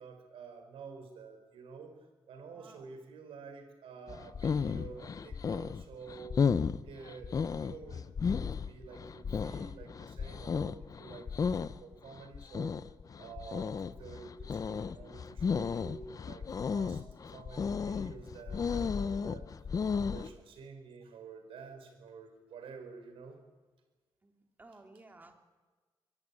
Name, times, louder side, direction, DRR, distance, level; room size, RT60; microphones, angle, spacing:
voice 1, 0.0-6.4 6.8-12.8 13.1-23.4, right 5 dB, 90° right, 6 dB, 5.1 m, -50 dB
voice 2, 2.5-2.9 24.2-24.3 24.6-25.4, right 2 dB, 20° right, 4 dB, 3.1 m, -55 dB
sound 1, 4.1-20.3, left 6 dB, 40° left, 0.8 m, -34 dB
23.5 x 16.0 x 10.0 m, 1.3 s
cardioid pair, 115°, 9 cm